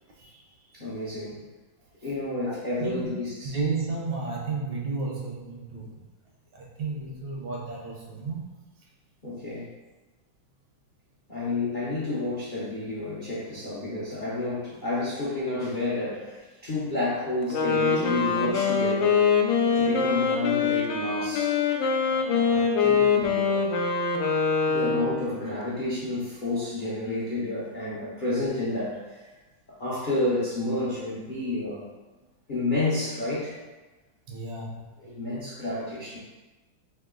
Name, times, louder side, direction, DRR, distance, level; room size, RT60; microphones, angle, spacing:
voice 1, 0.7-1.4 2.0-3.5 9.2-9.7 11.3-19.2 19.7-21.6 22.0-23.8 24.6-29.2 29.7-31.8 32.5-33.6 35.0-36.2, left 2 dB, 60° left, -9 dB, 0.5 m, -30 dB
voice 2, 2.5-3.1 3.5-6.0 6.5-8.5 34.3-34.9, right 4 dB, 70° right, -2 dB, 1.4 m, -33 dB
Wind instrument woodwind instrument, 17.4-25.3, left 5 dB, 80° left, 1.3 m, -24 dB
3.5 x 3.0 x 3.7 m, 1.2 s
omnidirectional pair, 2.2 m